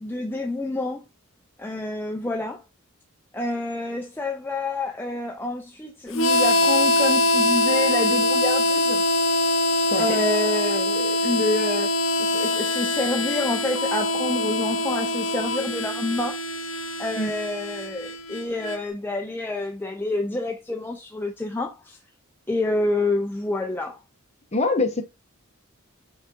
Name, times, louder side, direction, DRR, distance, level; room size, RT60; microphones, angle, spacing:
voice 1, 0.0-1.0 1.6-2.6 3.3-9.0 10.0-11.9 12.2-16.7 17.0-22.0 22.5-24.0, left 2 dB, 10° left, 0.4 m, -28 dB
Harmonica, 6.1-18.8, left 2 dB, 60° left, 0.7 m, -23 dB
voice 2, 24.5-25.0, left 2 dB, 30° left, 0.9 m, -24 dB
5.5 x 3.5 x 2.5 m
head